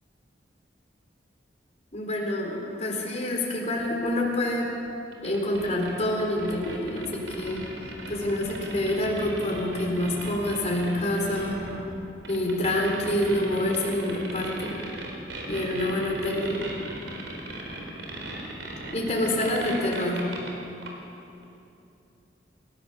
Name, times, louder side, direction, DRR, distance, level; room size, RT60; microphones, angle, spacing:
voice 1, 1.9-4.7 5.2-7.7 8.1-11.6 12.3-14.8 15.5-16.6 18.9-20.3, left 1 dB, 40° left, 0 dB, 4.2 m, -27 dB
sound 1, 3.8-20.5 20.8-20.9 21.4-21.5, right 2 dB, 85° right, 4.1 m, -38 dB
28.0 x 16.0 x 7.0 m, 2.7 s
head